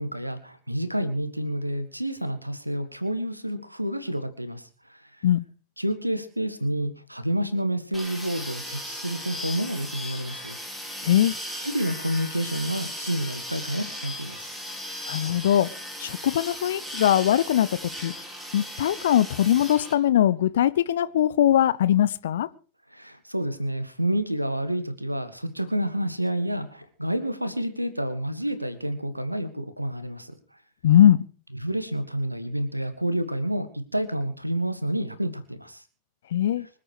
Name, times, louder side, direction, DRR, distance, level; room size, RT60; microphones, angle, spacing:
voice 1, 0.0-5.3 5.8-10.9 11.6-14.5 22.9-30.3 31.6-35.8, right 1 dB, 85° right, 1.8 m, -29 dB
sound 1, 7.9-19.9, left 1 dB, 5° right, 4.5 m, -37 dB
voice 2, 11.0-11.3 15.1-15.7 16.0-17.7 18.0-18.1 18.5-22.5 30.8-31.2 36.3-36.7, left 11 dB, 60° left, 0.8 m, -21 dB
25.0 x 8.6 x 4.9 m
figure-of-eight pair, 90°, 0 cm